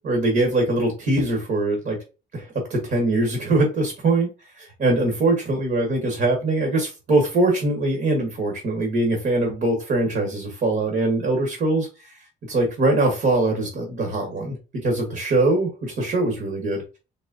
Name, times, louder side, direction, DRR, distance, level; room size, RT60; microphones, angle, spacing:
voice 1, 0.0-2.0 2.3-4.3 4.6-12.2 12.5-16.8, right 2 dB, 55° right, 2 dB, 1.5 m, -22 dB
4.1 x 3.1 x 2.6 m, 0.30 s
cardioid pair, 90°, 20 cm